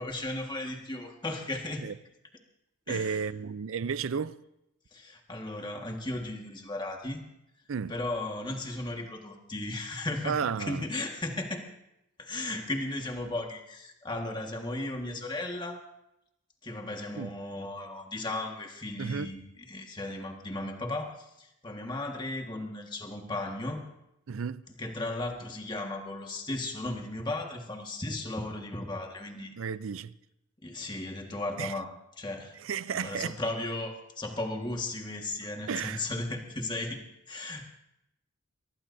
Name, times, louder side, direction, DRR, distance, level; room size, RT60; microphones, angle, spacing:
voice 1, 0.0-1.9 2.9-3.2 4.9-7.2 7.9-11.7 12.2-15.8 16.6-23.8 24.8-29.5 30.6-32.6 32.9-37.7, left 2 dB, 20° left, 1.6 m, -36 dB
voice 2, 2.9-4.4 7.7-7.9 10.2-10.9 17.2-17.3 19.0-19.3 24.3-24.6 29.6-30.1 31.6-31.8 32.6-33.4 35.7-36.1, right 6 dB, 80° right, 0.5 m, -33 dB
23.5 x 19.0 x 2.7 m
head